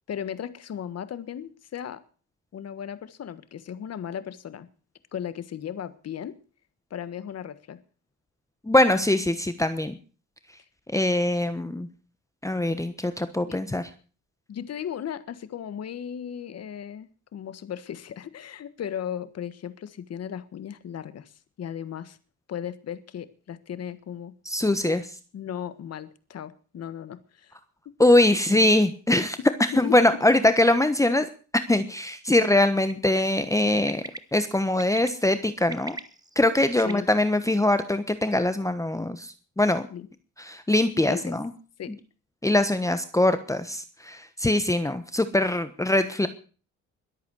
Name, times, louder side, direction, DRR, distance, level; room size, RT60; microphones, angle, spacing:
voice 1, 0.1-2.0 2.5-4.7 5.1-6.4 6.9-7.8 13.5-13.6 14.5-22.2 22.5-25.0 25.3-27.6 27.8-27.9 29.7-30.0 36.8-37.1 39.9-40.1 41.1-41.4 41.8-41.9, left 9 dB, 55° left, 1.5 m, -36 dB
voice 2, 8.6-10.0 10.9-11.9 12.4-13.8 24.4-25.0 28.0-29.4 29.8-31.3 31.7-34.0 34.3-36.0 36.3-39.9 40.4-41.5 42.4-46.3, left 1 dB, 10° left, 1.2 m, -22 dB
Bird, 32.9-33.2 33.9-34.2 34.8-35.1 35.6-36.9, right 2 dB, 15° right, 1.2 m, -38 dB
22.0 x 8.4 x 6.3 m
cardioid pair, 90°, 30 cm